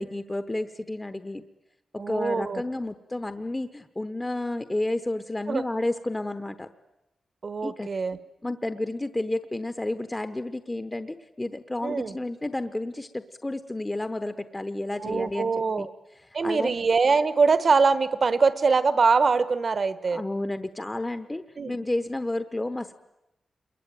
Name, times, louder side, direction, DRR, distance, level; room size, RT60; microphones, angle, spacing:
voice 1, 0.0-1.4 1.9-6.7 7.6-7.9 8.4-15.5 15.8-15.9 16.4-16.7 20.1-22.9, left 2 dB, 15° left, 10 dB, 1.0 m, -31 dB
voice 2, 2.0-2.6 5.5-5.6 7.4-8.2 11.8-12.1 15.0-15.9 16.3-20.2 21.6-21.7, right 4 dB, 45° right, 15 dB, 1.1 m, -23 dB
28.5 x 22.5 x 9.2 m, 0.91 s
wide cardioid pair, 145°, 0 cm